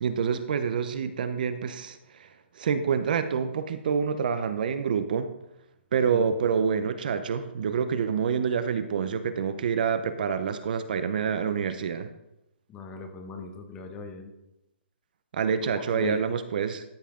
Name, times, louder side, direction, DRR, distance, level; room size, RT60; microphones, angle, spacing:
voice 1, 0.0-2.3 2.6-5.3 5.9-12.1 15.3-16.8, right 6 dB, 45° right, 10 dB, 0.6 m, -27 dB
voice 2, 12.7-14.3 15.7-16.2, left 3 dB, 15° left, 6 dB, 0.8 m, -39 dB
13.0 x 5.7 x 3.7 m, 0.89 s
hypercardioid pair, 170°, 6 cm